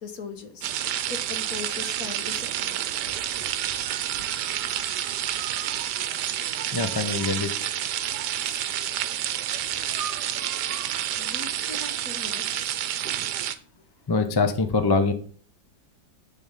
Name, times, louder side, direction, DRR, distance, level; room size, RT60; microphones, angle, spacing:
voice 1, 0.0-2.8 11.2-12.6, left 4 dB, 60° left, 7 dB, 1.6 m, -39 dB
sound 1, 0.6-13.6, right 11 dB, 85° right, 1.3 m, -29 dB
voice 2, 6.7-7.7 8.4-8.6 14.1-15.1, left 4 dB, 30° left, 8 dB, 0.4 m, -24 dB
10.5 x 3.9 x 5.5 m, 0.44 s
omnidirectional pair, 1.8 m